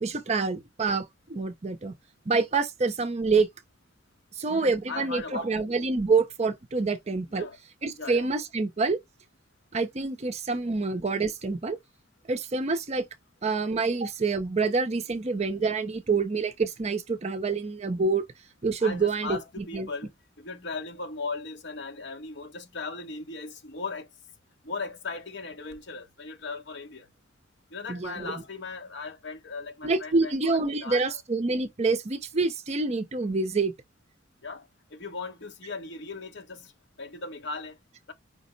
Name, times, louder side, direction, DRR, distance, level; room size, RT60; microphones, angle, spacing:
voice 1, 0.0-1.9 2.3-3.5 4.4-7.5 7.8-9.0 9.7-11.8 12.3-13.1 13.4-18.2 18.6-19.9 27.9-28.3 29.8-33.7, right 4 dB, 35° right, 0.5 m, -27 dB
voice 2, 4.5-5.6 7.3-7.6 8.0-8.3 18.8-24.1 24.6-27.1 27.7-31.2 34.4-36.7 37.0-37.8, left 4 dB, 60° left, 1.1 m, -38 dB
5.1 x 2.0 x 3.8 m
head